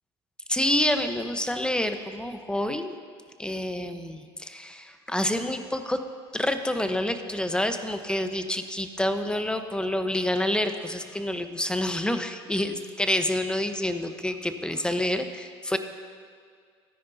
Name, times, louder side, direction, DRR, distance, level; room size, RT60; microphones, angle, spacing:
voice 1, 0.5-2.9 3.4-6.0 6.3-15.8, left 1 dB, 5° left, 8 dB, 1.0 m, -28 dB
23.0 x 10.0 x 2.8 m, 2.1 s
hypercardioid pair, 65°, 14 cm